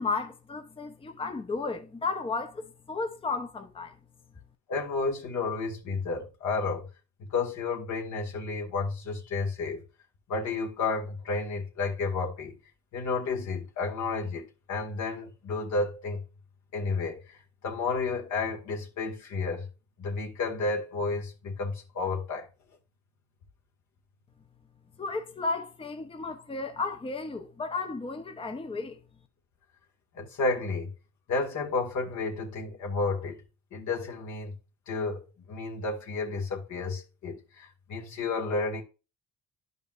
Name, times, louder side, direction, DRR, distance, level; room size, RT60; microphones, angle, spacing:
voice 1, 0.0-3.9 25.0-29.0, left 3 dB, 20° left, 0.8 m, -33 dB
voice 2, 4.7-6.9 7.3-9.8 10.3-12.6 12.9-16.2 16.7-19.7 20.0-22.5 30.1-30.9 31.3-33.4 33.7-34.6 34.9-38.8, left 3 dB, 70° left, 2.1 m, -31 dB
11.0 x 5.3 x 2.5 m
cardioid pair, 90°, 30 cm